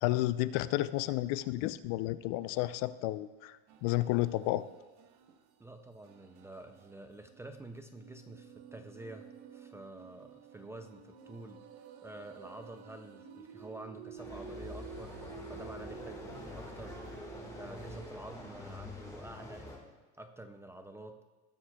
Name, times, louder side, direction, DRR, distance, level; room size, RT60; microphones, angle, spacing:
voice 1, 0.0-4.7, left 16 dB, 65° left, 15 dB, 0.5 m, -31 dB
sound 1, 3.7-5.5 6.0-18.1, right 7 dB, 55° right, 0.8 m, -51 dB
voice 2, 5.6-11.6 12.0-19.7 20.2-21.2, right 1 dB, 10° right, 6 dB, 0.3 m, -49 dB
sound 2, 14.2-19.8, left 2 dB, 10° left, 1.6 m, -46 dB
18.5 x 7.2 x 2.3 m, 1.2 s
cardioid pair, 140°, 33 cm